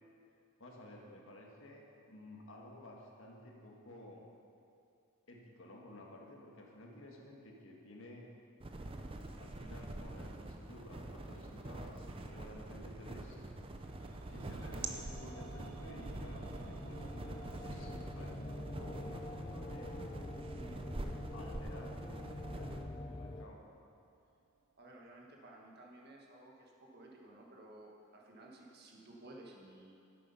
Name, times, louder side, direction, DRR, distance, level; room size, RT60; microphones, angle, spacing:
voice 1, 0.6-4.3 5.3-8.3 9.4-13.4 14.3-20.7 21.3-23.6, left 1 dB, 65° left, -1 dB, 1.5 m, -54 dB
sound 1, 8.6-22.8, right 2 dB, 25° right, 0.6 m, -45 dB
sound 2, 13.6-23.5, left 1 dB, 25° left, 0.4 m, -47 dB
sound 3, 13.8-23.9 24.2-24.3, right 4 dB, 80° right, 0.5 m, -57 dB
voice 2, 24.8-29.9, right 1 dB, 50° right, -1 dB, 1.6 m, -55 dB
10.0 x 8.4 x 5.6 m, 2.5 s
head